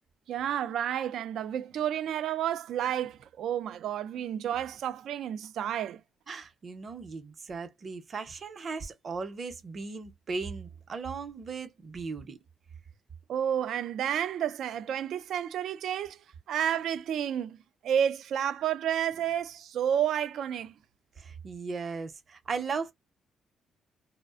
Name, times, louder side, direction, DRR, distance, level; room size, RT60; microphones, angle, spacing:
voice 1, 0.3-6.0 13.3-16.2 16.5-17.6 17.8-20.7, right 9 dB, 75° right, 0.3 m, -30 dB
voice 2, 6.3-12.4 21.2-22.9, right 4 dB, 45° right, 0.7 m, -37 dB
2.4 x 2.1 x 2.4 m
cardioid pair, 90°, 0 cm